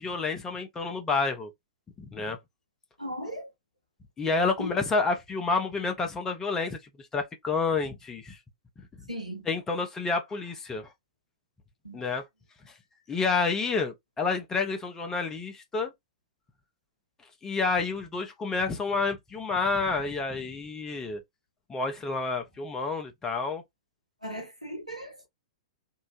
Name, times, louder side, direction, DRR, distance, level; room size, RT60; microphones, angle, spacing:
voice 1, 0.0-1.5 2.0-2.4 4.2-6.8 7.1-8.4 9.5-10.9 11.9-12.2 13.1-15.9 17.4-21.2 21.7-23.6, left 4 dB, 15° left, 0.6 m, -29 dB
voice 2, 3.0-3.5 4.6-4.8 9.1-9.5 11.8-12.0 24.2-25.3, equal, 90° right, 1.0 m, -37 dB
2.7 x 2.0 x 2.8 m
figure-of-eight pair, 105°, 4 cm